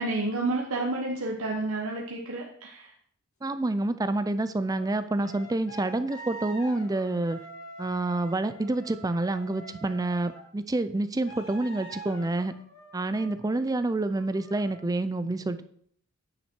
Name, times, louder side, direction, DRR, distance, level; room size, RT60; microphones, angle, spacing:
voice 1, 0.0-2.9, right 2 dB, 80° right, -1 dB, 1.1 m, -30 dB
voice 2, 3.4-7.4 7.8-12.5 12.9-15.6, right 2 dB, 15° right, 12 dB, 0.4 m, -28 dB
sound 1, 4.6-10.4 11.3-13.6 14.1-14.7, right 1 dB, 70° left, 2.8 m, -45 dB
9.6 x 5.8 x 4.5 m, 0.63 s
head